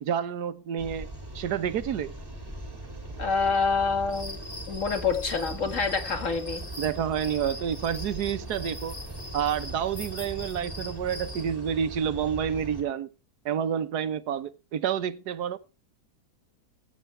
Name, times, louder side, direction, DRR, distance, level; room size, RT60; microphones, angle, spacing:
voice 1, 0.0-1.1 1.3-2.1 6.8-9.0 9.3-13.1 13.4-15.6, right 8 dB, 85° right, 1.5 m, -29 dB
sound 1, 0.8-12.8, right 1 dB, 15° right, 2.8 m, -40 dB
voice 2, 3.2-4.4 4.7-6.6, left 5 dB, 50° left, 2.3 m, -27 dB
sound 2, 4.1-11.5, left 1 dB, 25° left, 2.7 m, -42 dB
16.0 x 8.8 x 3.3 m
omnidirectional pair, 1.7 m